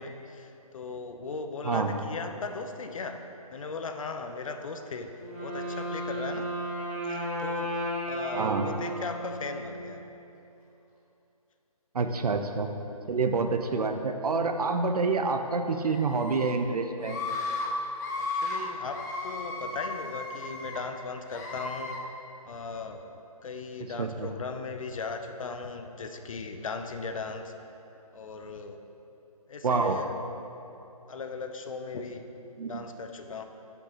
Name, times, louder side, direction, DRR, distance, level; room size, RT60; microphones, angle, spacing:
voice 1, 0.0-3.2 3.5-5.1 5.4-6.5 7.0-7.7 8.1-10.0 18.2-22.0 22.5-23.1 23.4-27.5 28.1-28.8 29.5-30.1 31.1-32.2 32.6-33.4, left 4 dB, 60° left, 6 dB, 0.6 m, -37 dB
Wind instrument woodwind instrument, 5.1-10.0, right 1 dB, 10° right, 1.1 m, -34 dB
voice 2, 8.3-8.7 11.9-12.7 13.1-17.2 24.0-24.3 29.6-30.0 32.6-32.8, right 4 dB, 75° right, 6 dB, 0.7 m, -27 dB
Screaming, 15.9-16.5 17.0-17.7 18.0-18.6 18.9-20.8 21.3-22.0, left 3 dB, 30° left, 0.9 m, -35 dB
11.0 x 5.3 x 2.9 m, 2.9 s
hypercardioid pair, 160°, 20 cm